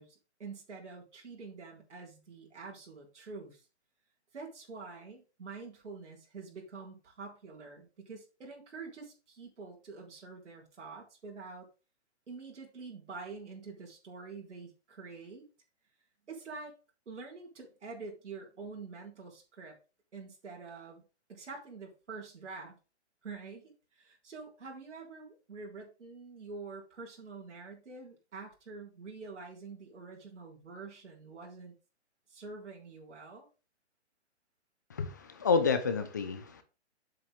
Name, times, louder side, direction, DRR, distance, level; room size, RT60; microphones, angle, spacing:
voice 1, 0.0-3.7 4.3-11.7 12.3-15.5 16.3-16.7 17.1-19.8 20.1-21.0 21.3-22.8 23.2-31.7 32.3-33.5, right 4 dB, 85° right, 3.9 m, -46 dB
voice 2, 34.9-36.6, left 5 dB, 15° left, 0.5 m, -29 dB
7.7 x 7.3 x 3.6 m
hypercardioid pair, 170°, 34 cm